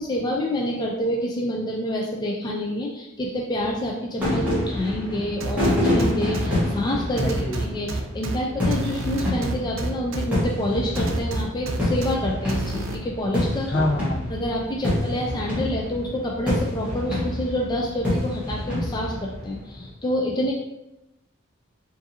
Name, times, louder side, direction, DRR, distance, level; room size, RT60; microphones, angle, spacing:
voice 1, 0.0-7.9 8.1-13.9 14.3-20.5, equal, 20° left, -1 dB, 0.4 m, -27 dB
sound 1, 4.2-19.9, left 1 dB, 5° right, 1.2 m, -27 dB
sound 2, 5.4-6.5 7.2-8.4 8.7-10.2 10.9-12.1 12.5-13.0, right 3 dB, 75° right, 0.5 m, -29 dB
voice 2, 7.2-7.6 13.7-14.3, left 1 dB, 60° left, 0 dB, 0.7 m, -25 dB
4.8 x 2.6 x 2.7 m, 0.90 s
head